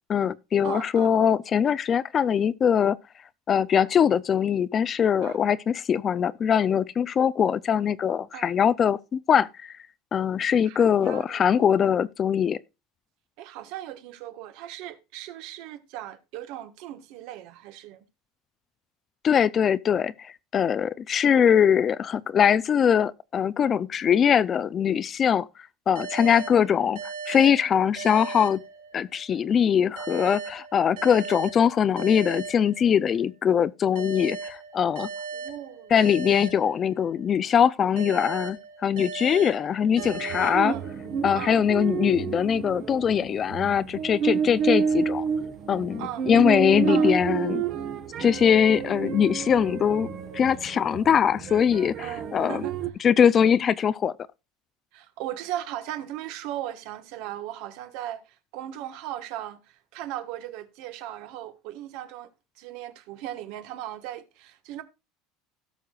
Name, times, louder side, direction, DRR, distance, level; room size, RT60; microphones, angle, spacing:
voice 1, 0.1-3.0 3.5-9.7 10.1-12.6 19.2-25.5 25.9-28.6 28.9-35.1 35.9-40.7 41.2-45.2 45.7-47.6 48.2-50.1 50.3-52.6 53.0-54.1, left 8 dB, 30° left, 0.4 m, -22 dB
voice 2, 0.6-1.1 5.2-5.4 8.3-8.5 10.6-11.9 13.4-18.0 26.2-26.5 35.3-35.9 40.4-40.8 41.3-41.6 46.0-46.2 46.9-47.1 52.0-52.8 54.9-62.3 62.6-64.8, right 12 dB, 65° right, 1.3 m, -37 dB
sound 1, 25.9-29.3 30.0-33.3 33.9-37.3 38.0-41.3, right 5 dB, 80° right, 4.1 m, -38 dB
sound 2, 40.0-52.9, right 6 dB, 45° right, 1.2 m, -30 dB
17.5 x 6.5 x 2.4 m
cardioid pair, 150°, 0 cm